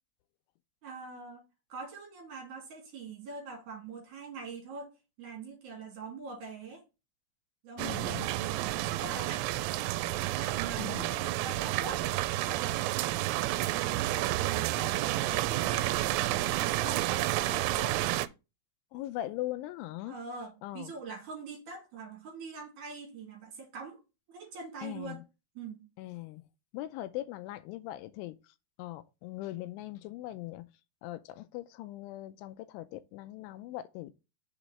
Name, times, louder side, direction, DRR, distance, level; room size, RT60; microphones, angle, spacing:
voice 1, 0.8-1.4 1.7-4.9 5.2-6.8 7.6-9.5 10.3-12.9 13.3-18.0 20.1-24.0 24.3-25.2 25.6-25.8, right 4 dB, 45° right, 3.6 m, -43 dB
voice 2, 7.8-8.3 10.8-11.2 18.9-20.2 20.6-20.9 24.8-25.2 26.0-26.5 26.7-28.4 28.8-30.7 31.0-34.1, left 15 dB, 85° left, 3.0 m, -40 dB
sound 1, 7.8-18.3, right 16 dB, 85° right, 3.1 m, -30 dB
7.1 x 5.1 x 4.2 m
omnidirectional pair, 5.6 m